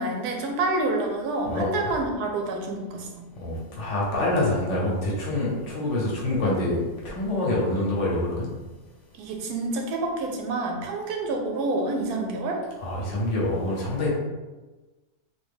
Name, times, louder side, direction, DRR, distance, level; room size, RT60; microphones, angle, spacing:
voice 1, 0.0-3.3 9.2-12.6, right 2 dB, 85° right, 2 dB, 1.1 m, -28 dB
voice 2, 3.4-8.5 12.8-14.2, left 1 dB, 55° left, -4 dB, 1.0 m, -26 dB
3.4 x 2.2 x 3.4 m, 1.2 s
omnidirectional pair, 1.6 m